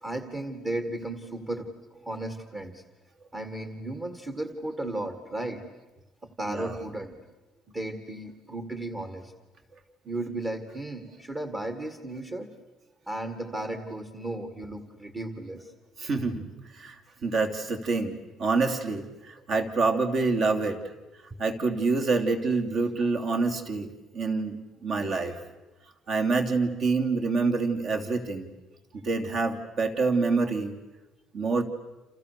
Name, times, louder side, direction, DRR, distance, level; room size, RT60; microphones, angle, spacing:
voice 1, 0.0-1.7 2.0-2.8 3.3-5.6 6.4-7.2 7.7-9.3 10.0-12.5 13.1-15.7, right 1 dB, 20° right, 7 dB, 1.9 m, -34 dB
voice 2, 6.4-6.8 16.0-16.4 16.8-20.8 21.4-25.4 26.1-28.5 29.0-30.8 31.3-31.6, right 3 dB, 45° right, 5 dB, 3.0 m, -27 dB
29.5 x 28.0 x 6.8 m, 1.1 s
cardioid pair, 155°, 0 cm